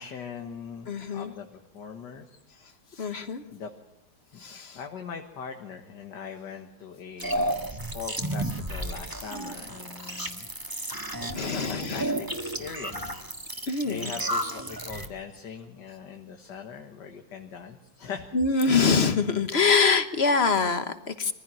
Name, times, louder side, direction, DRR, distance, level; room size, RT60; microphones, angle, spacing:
voice 1, 0.0-2.4 3.5-3.7 4.7-10.5 11.2-13.2 13.8-18.3, left 6 dB, 70° left, 4 dB, 2.0 m, -41 dB
voice 2, 0.9-1.3 3.0-3.4 4.4-4.8 10.0-10.3 10.9-12.1 13.7-14.1 18.3-21.3, left 4 dB, 40° left, 10 dB, 1.2 m, -25 dB
sound 1, 7.2-15.1, right 1 dB, 10° right, 1.4 m, -32 dB
22.5 x 15.5 x 7.6 m, 0.88 s
omnidirectional pair, 2.0 m